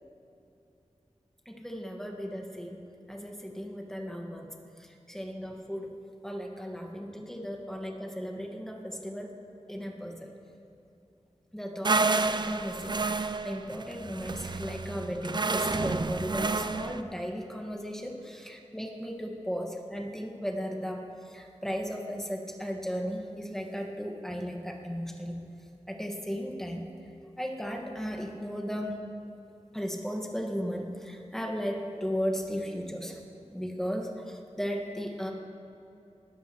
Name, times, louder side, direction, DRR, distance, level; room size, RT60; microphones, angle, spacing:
voice 1, 1.4-2.8 3.1-4.5 4.8-5.9 6.2-9.3 9.7-10.3 11.5-21.0 21.3-25.4 25.9-26.9 27.4-28.9 29.7-33.2 33.5-35.3, equal, 5° left, 1 dB, 1.6 m, -36 dB
sound 1, 11.8-17.0, right 3 dB, 40° right, 0.4 m, -30 dB
19.5 x 12.5 x 3.1 m, 2.8 s
wide cardioid pair, 65°, 12 cm